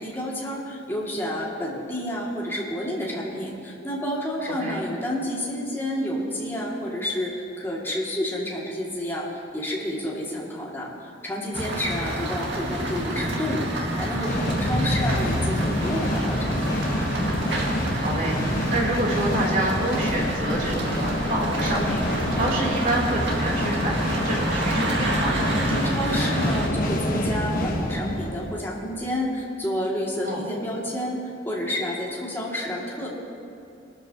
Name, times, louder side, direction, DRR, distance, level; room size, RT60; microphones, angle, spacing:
voice 1, 0.0-9.3 9.5-10.9 11.2-17.0 25.7-31.2 31.5-33.1, left 1 dB, 15° left, -5 dB, 2.5 m, -29 dB
sound 1, 11.5-26.7, right 1 dB, 80° right, 2.1 m, -29 dB
sound 2, 14.2-29.0, equal, 50° left, 1.3 m, -27 dB
voice 2, 17.9-25.5 30.2-30.4, right 1 dB, 50° right, -4 dB, 3.5 m, -28 dB
23.0 x 13.5 x 3.0 m, 2.5 s
head